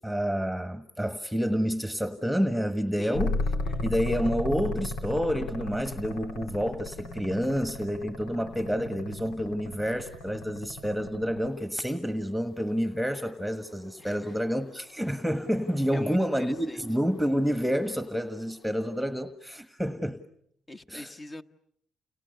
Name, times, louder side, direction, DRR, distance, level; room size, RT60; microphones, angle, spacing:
voice 1, 0.0-3.4 3.8-20.2 20.9-21.1, equal, ahead, 9 dB, 1.5 m, -29 dB
sound 1, 3.1-11.7 13.9-18.5, left 2 dB, 90° left, 3.0 m, -36 dB
voice 2, 14.0-14.3 15.9-16.8 20.7-21.4, left 1 dB, 25° left, 8 dB, 1.3 m, -42 dB
30.0 x 29.5 x 6.8 m, 0.69 s
cardioid pair, 90°, 0 cm